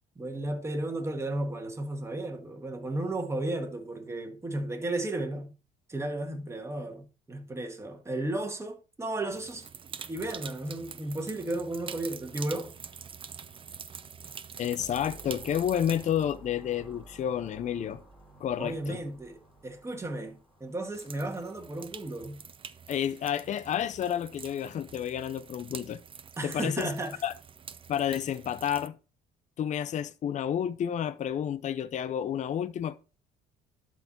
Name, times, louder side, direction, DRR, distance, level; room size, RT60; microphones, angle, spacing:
voice 1, 0.2-5.5 5.9-9.7 10.1-12.7 18.6-22.4 26.4-27.2, right 2 dB, 15° right, 1.9 m, -34 dB
sound 1, 9.3-18.6 19.5-19.6 20.9-28.9, right 6 dB, 30° right, 0.7 m, -46 dB
voice 2, 14.6-18.0 18.4-19.0 22.9-26.0 26.4-26.9 27.2-27.3 27.9-29.0 29.6-33.0, left 9 dB, 45° left, 0.6 m, -30 dB
sound 2, 14.8-21.2, right 2 dB, 5° left, 2.5 m, -52 dB
12.0 x 4.7 x 4.4 m
cardioid pair, 110°, 17 cm